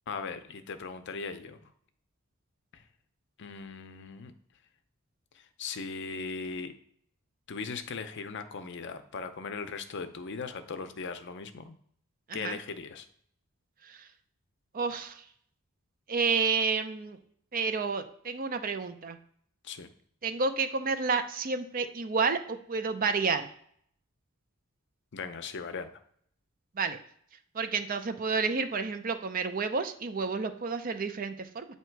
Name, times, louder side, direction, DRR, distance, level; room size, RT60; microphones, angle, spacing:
voice 1, 0.1-1.7 2.7-2.8 3.4-4.3 5.3-6.7 7.5-11.8 12.3-13.1 19.6-19.9 25.1-26.0, left 4 dB, 55° left, 9 dB, 0.6 m, -38 dB
voice 2, 14.7-15.2 16.1-17.2 17.5-19.2 20.2-23.5 26.8-27.0 27.5-31.6, right 4 dB, 40° right, 9 dB, 0.5 m, -30 dB
8.1 x 2.9 x 4.5 m, 0.65 s
head